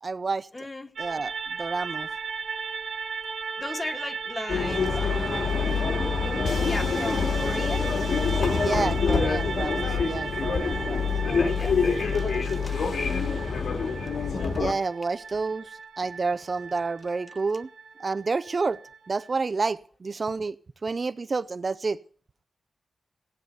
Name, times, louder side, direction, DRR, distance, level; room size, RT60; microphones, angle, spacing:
voice 1, 0.0-0.7 1.0-2.1 8.6-11.1 14.6-17.7 18.0-18.8 19.1-20.6 20.8-22.0, right 4 dB, 45° right, 16 dB, 0.6 m, -29 dB
voice 2, 0.5-0.9 3.6-5.6 5.8-6.1 6.6-7.9 8.4-8.6 9.1-9.3 11.2-11.8 12.1-12.8, left 2 dB, 25° left, 11 dB, 1.3 m, -37 dB
sound 1, 1.0-19.3, right 5 dB, 70° right, 1.8 m, -36 dB
sound 2, 4.5-14.7, left 5 dB, 85° left, 2.3 m, -26 dB
16.0 x 9.5 x 6.7 m, 0.42 s
wide cardioid pair, 125°, 0 cm